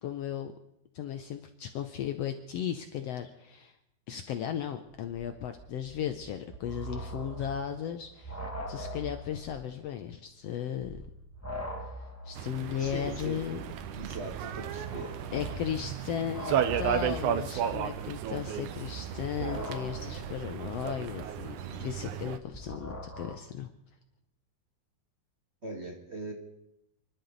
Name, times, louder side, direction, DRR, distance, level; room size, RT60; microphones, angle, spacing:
voice 1, 0.0-0.5 0.9-3.7 4.1-11.0 12.2-13.6 15.3-23.7, left 9 dB, 70° left, 8 dB, 1.6 m, -36 dB
sound 1, 4.9-9.8 10.1-10.2 10.7-23.4, right 1 dB, 10° left, 0.7 m, -42 dB
sound 2, 12.4-22.4, right 9 dB, 80° right, 2.3 m, -34 dB
voice 2, 12.8-13.4 13.9-15.1 25.6-26.3, right 2 dB, 30° right, -1 dB, 1.4 m, -40 dB
29.5 x 11.5 x 4.0 m, 0.83 s
omnidirectional pair, 3.5 m